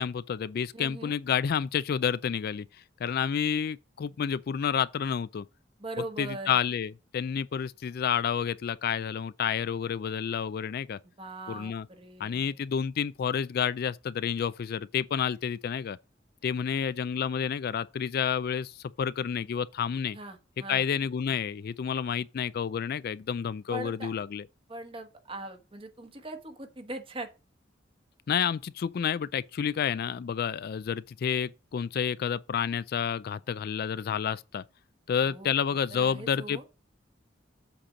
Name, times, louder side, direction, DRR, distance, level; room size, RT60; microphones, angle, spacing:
voice 1, 0.0-2.7 3.0-5.5 6.2-11.0 11.5-11.9 12.2-16.0 16.4-20.2 20.7-24.4 28.3-34.6 35.1-36.7, left 7 dB, 55° left, 0.3 m, -30 dB
voice 2, 0.7-1.1 5.8-6.6 11.0-12.5 20.1-20.9 23.7-24.1 24.7-27.3 35.2-35.5 35.9-36.6, right 2 dB, 30° right, 1.2 m, -41 dB
7.7 x 4.3 x 5.0 m
head